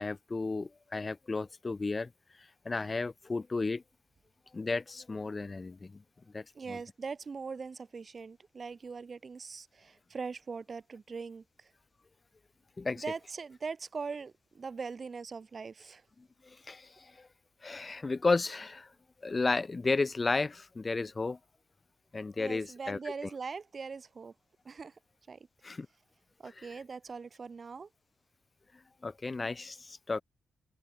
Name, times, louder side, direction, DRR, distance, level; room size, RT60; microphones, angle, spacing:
voice 1, 0.0-2.1 2.7-3.8 4.5-5.8 6.3-6.4 6.7-6.8 12.8-13.0 16.7-16.8 17.6-18.9 19.2-21.4 22.1-23.0 25.6-25.9 29.0-30.2, left 3 dB, 25° left, 0.6 m, -32 dB
voice 2, 6.5-11.7 13.0-16.0 22.4-24.3 24.6-24.9 25.3-25.4 26.4-27.9, right 5 dB, 35° right, 1.1 m, -41 dB
wide cardioid pair, 155°, 0 cm